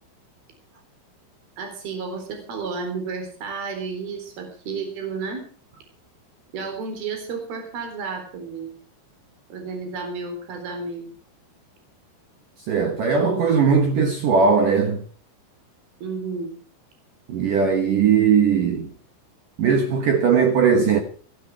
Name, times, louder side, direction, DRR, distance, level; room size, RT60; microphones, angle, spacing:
voice 1, 1.6-5.4 6.5-8.7 9.5-11.1 16.0-16.5, right 4 dB, 50° right, 5.6 m, -32 dB
voice 2, 12.7-15.0 17.3-18.9 19.6-21.0, right 6 dB, 70° right, 2.1 m, -19 dB
16.0 x 14.5 x 4.7 m
omnidirectional pair, 5.7 m